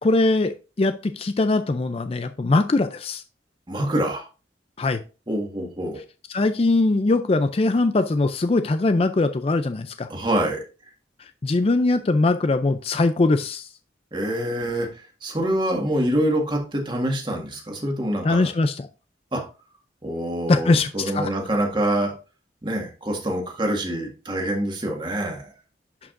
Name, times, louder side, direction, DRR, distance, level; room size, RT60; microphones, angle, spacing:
voice 1, 0.0-3.2 4.8-5.0 6.3-10.1 11.4-13.7 18.2-18.9 20.5-21.3, left 2 dB, 30° left, 10 dB, 0.4 m, -21 dB
voice 2, 3.7-4.2 5.3-6.0 10.1-10.6 14.1-18.5 19.3-19.4 20.0-22.1 22.6-25.5, right 1 dB, 25° right, 1 dB, 1.7 m, -25 dB
11.0 x 4.8 x 2.5 m, 0.32 s
head